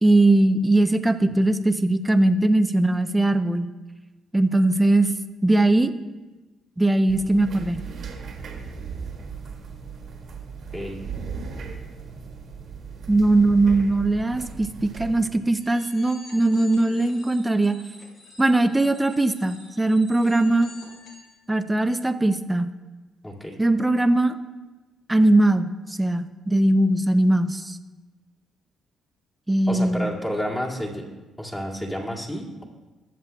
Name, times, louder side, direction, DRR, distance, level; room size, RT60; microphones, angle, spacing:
voice 1, 0.0-3.7 4.3-5.1 5.4-5.9 6.8-7.8 13.1-17.8 18.4-20.7 21.5-22.7 23.6-24.3 25.1-27.8 29.5-30.1, right 2 dB, 15° right, 9 dB, 0.6 m, -20 dB
sound 1, 7.1-15.3, right 5 dB, 60° right, 1.5 m, -37 dB
sound 2, 15.5-21.3, left 2 dB, 60° left, 2.4 m, -47 dB
voice 2, 23.2-23.6 29.7-31.1 31.4-32.6, equal, 15° left, -3 dB, 2.3 m, -30 dB
21.0 x 7.5 x 2.3 m, 1.2 s
cardioid pair, 90°, 0 cm